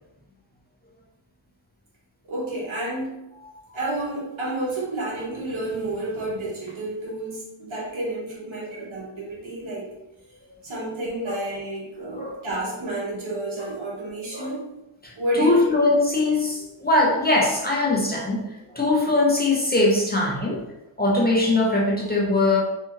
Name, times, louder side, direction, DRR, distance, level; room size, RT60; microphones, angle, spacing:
voice 1, 2.2-3.2 3.7-9.9 10.6-14.7 15.2-15.6, right 1 dB, 75° right, -4 dB, 1.0 m, -30 dB
voice 2, 15.0-20.7 21.0-22.6, left 2 dB, 20° left, -3 dB, 0.5 m, -21 dB
2.7 x 2.4 x 2.9 m, 0.94 s
wide cardioid pair, 80°, 49 cm